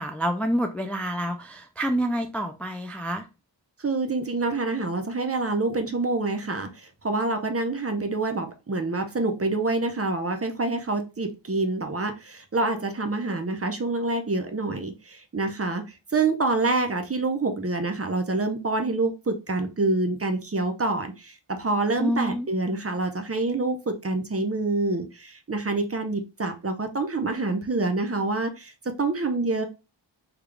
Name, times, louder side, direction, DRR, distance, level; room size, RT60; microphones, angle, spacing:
voice 1, 0.0-3.3 22.0-22.5, equal, 5° left, 6 dB, 0.3 m, -27 dB
voice 2, 3.8-15.8 16.1-29.6, right 3 dB, 30° right, 6 dB, 0.6 m, -27 dB
3.6 x 2.3 x 3.2 m, 0.29 s
wide cardioid pair, 60°, 45 cm